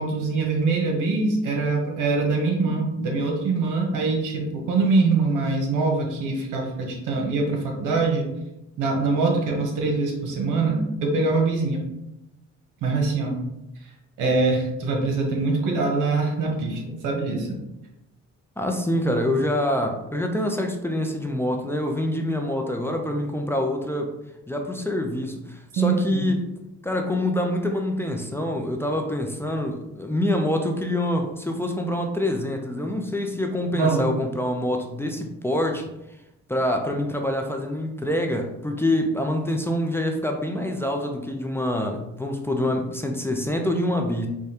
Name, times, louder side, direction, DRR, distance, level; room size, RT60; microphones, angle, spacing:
voice 1, 0.0-8.3 8.8-11.8 12.8-13.4 14.2-17.6 25.7-26.3 33.7-34.1, right 3 dB, 90° right, 1 dB, 0.9 m, -23 dB
voice 2, 18.6-24.1 24.5-26.4 26.8-35.8 36.5-44.3, left 1 dB, 10° left, 3 dB, 0.4 m, -26 dB
4.9 x 2.2 x 2.8 m, 0.90 s
cardioid pair, 90°, 30 cm